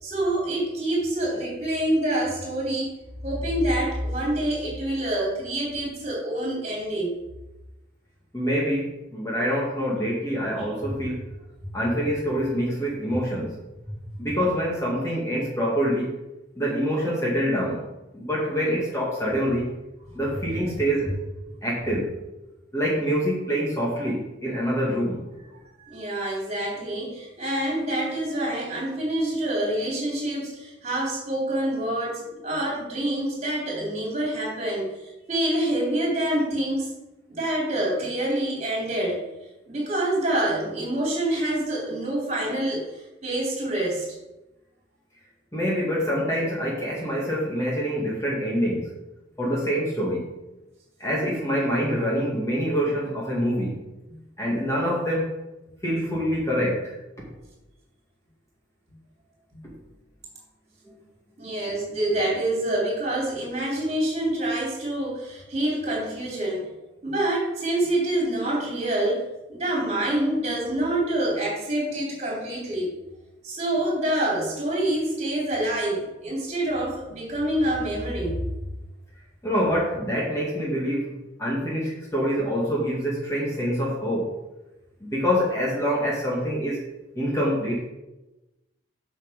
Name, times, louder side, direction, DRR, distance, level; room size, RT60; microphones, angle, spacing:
voice 1, 0.0-2.9 3.2-7.1 25.8-36.9 37.3-39.2 39.7-42.9 43.2-44.1 54.1-54.2 59.5-59.6 61.4-66.7 67.0-72.9 73.4-78.4, right 1 dB, 35° right, -3 dB, 3.5 m, -26 dB
voice 2, 8.3-11.2 11.7-13.5 14.2-16.1 16.6-17.9 18.1-19.7 20.1-21.2 21.6-22.2 22.7-25.2 45.5-48.9 49.4-50.3 51.0-53.8 54.4-55.3 55.8-57.0 79.4-81.1 81.4-84.3 85.0-86.8 87.2-87.9, equal, 15° left, -5 dB, 2.0 m, -25 dB
8.0 x 6.2 x 5.2 m, 1.0 s
head